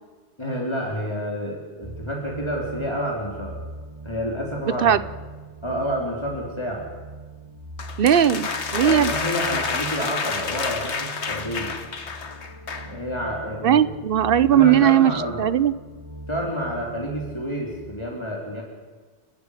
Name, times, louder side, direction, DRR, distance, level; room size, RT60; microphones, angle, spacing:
voice 1, 0.4-3.6 4.0-5.0 5.6-6.9 8.8-11.8 12.8-13.9 14.4-15.5 16.3-18.6, equal, 25° left, -2 dB, 3.3 m, -29 dB
sound 1, 1.8-17.9, right 2 dB, 30° right, 1.6 m, -41 dB
sound 2, 7.8-13.0, left 5 dB, 75° left, 1.6 m, -29 dB
voice 2, 8.0-9.1 13.6-15.1 15.4-15.7, right 9 dB, 55° right, 16 dB, 0.9 m, -18 dB
29.5 x 10.0 x 9.9 m, 1.4 s
omnidirectional pair, 1.1 m